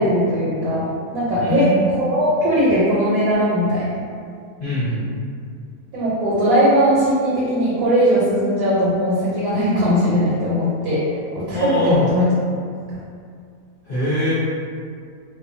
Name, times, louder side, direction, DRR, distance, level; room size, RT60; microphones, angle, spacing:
voice 1, 0.0-4.0 5.9-11.1 11.3-12.3, equal, 75° right, -8 dB, 1.2 m, -19 dB
voice 2, 1.4-1.8 4.6-5.0 11.5-12.1 13.8-14.3, left 1 dB, 45° left, -14 dB, 0.8 m, -22 dB
2.6 x 2.2 x 2.5 m, 2.2 s
omnidirectional pair, 1.8 m